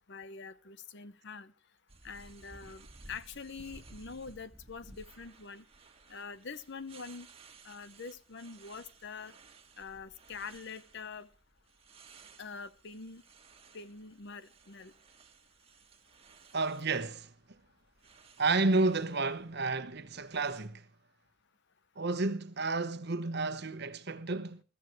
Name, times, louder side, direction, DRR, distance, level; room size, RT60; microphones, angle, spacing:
voice 1, 0.1-1.5 2.0-5.7 6.1-7.3 7.6-9.4 9.8-11.3 12.4-13.2 13.7-14.9, left 5 dB, 60° left, 0.9 m, -45 dB
sound 1, 1.9-20.7, right 3 dB, 30° right, 1.8 m, -57 dB
voice 2, 16.5-17.3 18.4-20.9 22.0-24.6, right 3 dB, 55° right, 1.2 m, -31 dB
21.0 x 14.0 x 3.2 m
head